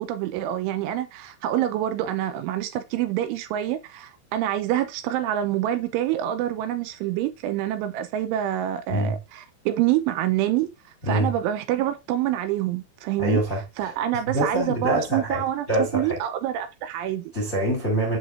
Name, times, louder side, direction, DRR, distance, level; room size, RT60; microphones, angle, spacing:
voice 1, 0.0-10.7 11.0-13.4 13.8-17.3, right 12 dB, 85° right, 2.9 m, -26 dB
voice 2, 13.2-13.9 14.3-15.4 15.7-16.2 17.3-18.2, right 1 dB, 35° left, 1.2 m, -25 dB
7.8 x 5.9 x 2.5 m
omnidirectional pair, 5.8 m